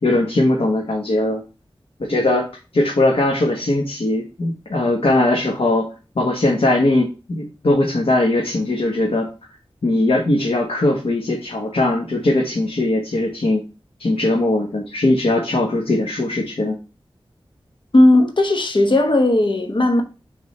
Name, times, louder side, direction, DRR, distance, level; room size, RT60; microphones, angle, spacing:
voice 1, 0.0-1.4 2.0-5.9 6.1-9.3 9.8-13.6 14.0-16.8, left 2 dB, 85° left, 1.3 m, -20 dB
voice 2, 17.9-20.0, left 1 dB, 60° left, 1.2 m, -15 dB
6.4 x 3.6 x 4.4 m
wide cardioid pair, 65°, 9 cm